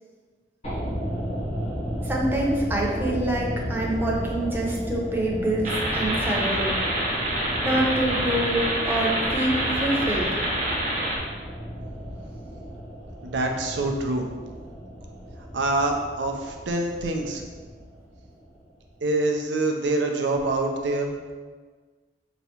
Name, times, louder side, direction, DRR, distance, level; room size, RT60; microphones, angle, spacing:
sound 1, 0.6-18.8 19.1-19.2, equal, 35° left, 1.1 m, -34 dB
voice 1, 2.0-6.7 7.6-10.3, right 1 dB, 10° right, -3 dB, 0.6 m, -26 dB
sound 2, 5.6-11.2, right 1 dB, 45° right, 0.8 m, -26 dB
voice 2, 13.2-14.3 15.5-17.4 19.0-21.1, right 2 dB, 90° right, 3 dB, 0.5 m, -25 dB
4.5 x 3.0 x 2.8 m, 1.5 s
head